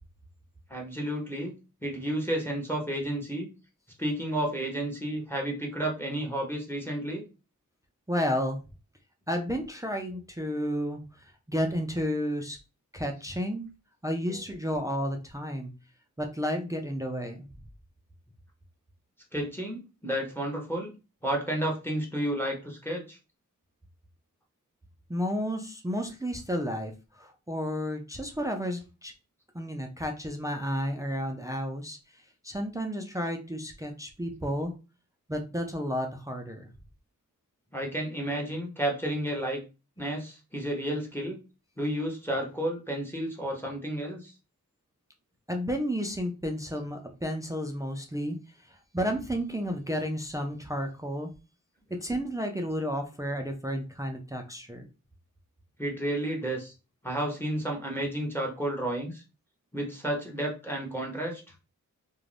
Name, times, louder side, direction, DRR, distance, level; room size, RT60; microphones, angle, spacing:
voice 1, 0.7-1.5 1.8-3.5 4.0-7.2 19.3-21.0 21.2-23.2 37.7-39.6 40.0-41.4 41.8-44.3 55.8-56.7 57.0-59.2 59.7-61.4, right 1 dB, 5° left, 0 dB, 0.7 m, -31 dB
voice 2, 8.1-8.6 9.3-12.6 12.9-13.7 14.0-15.7 16.2-17.5 25.1-29.1 29.5-34.7 35.3-36.7 45.5-51.3 51.9-54.9, equal, 10° right, 3 dB, 0.3 m, -32 dB
2.5 x 2.1 x 3.2 m, 0.30 s
wide cardioid pair, 120°, 32 cm